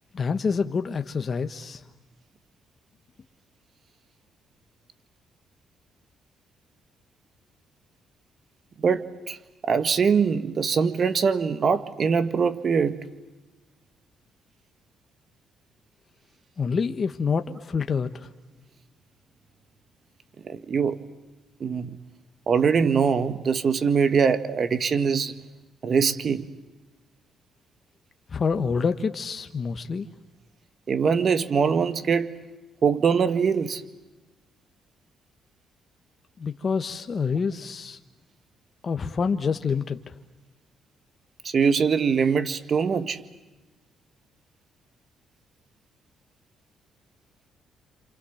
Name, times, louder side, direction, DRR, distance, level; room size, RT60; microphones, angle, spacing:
voice 1, 0.1-1.8 16.6-18.3 28.3-30.1 36.4-38.0 38.8-40.1, left 5 dB, 40° left, 7 dB, 1.3 m, -27 dB
voice 2, 8.8-9.4 9.7-13.0 20.4-21.0 21.6-22.0 22.5-25.4 25.8-26.4 30.9-32.3 32.8-33.8 41.4-43.2, right 6 dB, 50° right, 12 dB, 1.7 m, -23 dB
29.5 x 27.5 x 7.3 m, 1.1 s
cardioid pair, 90°, 0 cm